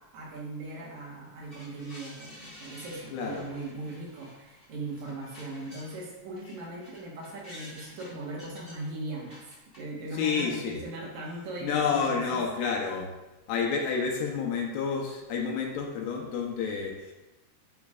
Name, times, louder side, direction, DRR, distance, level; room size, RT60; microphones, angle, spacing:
voice 1, 0.1-9.4 9.7-12.4, right 2 dB, 60° right, -3 dB, 2.1 m, -39 dB
sound 1, 1.5-6.1 6.4-9.8 10.2-10.7, left 1 dB, 20° left, 1.4 m, -51 dB
voice 2, 3.1-3.5 10.1-10.8 11.6-13.1 13.5-17.1, left 5 dB, 80° left, 0 dB, 2.7 m, -29 dB
10.5 x 4.5 x 2.4 m, 1.0 s
omnidirectional pair, 4.9 m